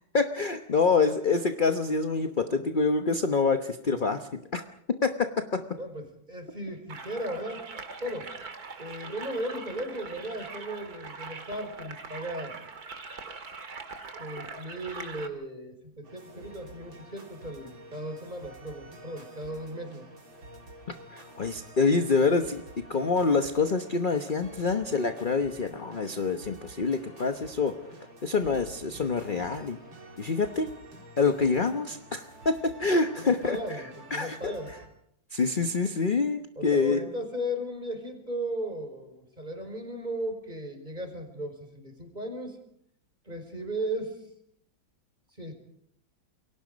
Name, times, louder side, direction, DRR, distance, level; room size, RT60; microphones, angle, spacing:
voice 1, 0.1-4.6 5.0-5.7 21.1-22.6 22.9-27.8 28.2-29.8 30.2-30.7 31.2-33.8 34.1-34.5 35.3-37.0, left 4 dB, 35° left, 7 dB, 0.9 m, -26 dB
voice 2, 5.8-7.7 8.0-8.3 8.8-12.7 14.2-20.0 33.2-34.7 36.6-42.6 43.2-44.2 45.4-45.5, right 1 dB, 20° right, 5 dB, 4.7 m, -36 dB
sound 1, 6.9-15.3, right 4 dB, 50° right, 2.5 m, -42 dB
sound 2, 16.0-34.9, right 1 dB, 75° right, 4.5 m, -49 dB
28.5 x 23.0 x 5.3 m, 0.71 s
omnidirectional pair, 2.2 m